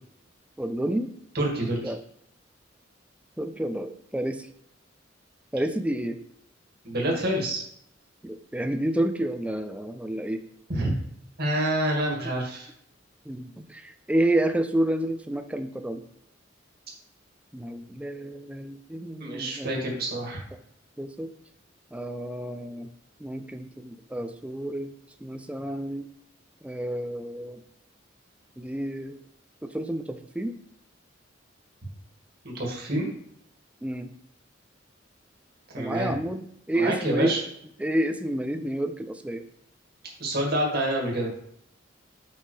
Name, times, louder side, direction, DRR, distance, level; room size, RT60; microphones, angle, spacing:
voice 1, 0.6-1.1 1.8-2.0 3.4-4.5 5.5-6.2 8.2-10.4 12.2-12.3 13.3-16.0 17.5-20.0 21.0-21.3 21.9-22.9 23.2-24.9 25.2-26.0 26.6-27.6 28.6-29.2 29.6-30.5 33.8-34.1 35.8-37.3 37.8-39.4, right 1 dB, 5° right, 8 dB, 0.4 m, -30 dB
voice 2, 1.3-1.9 6.8-7.6 10.7-10.9 11.4-12.7 19.2-20.4 32.4-33.1 35.7-36.2 36.7-37.4 40.2-41.3, right 1 dB, 55° right, -2 dB, 2.1 m, -27 dB
6.7 x 5.5 x 3.3 m, 0.70 s
head